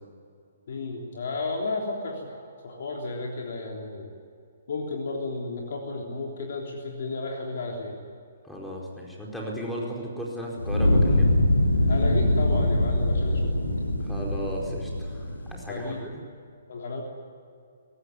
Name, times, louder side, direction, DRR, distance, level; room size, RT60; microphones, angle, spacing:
voice 1, 0.7-4.1 4.7-8.0 11.8-13.7 15.7-16.0 16.7-17.0, left 3 dB, 55° left, 0 dB, 3.6 m, -33 dB
voice 2, 8.4-11.4 14.0-16.2, equal, 5° left, -3 dB, 4.6 m, -35 dB
Fire, 10.6-15.8, left 1 dB, 85° left, 3.0 m, -23 dB
23.0 x 18.0 x 9.8 m, 2.4 s
figure-of-eight pair, 125°, 0 cm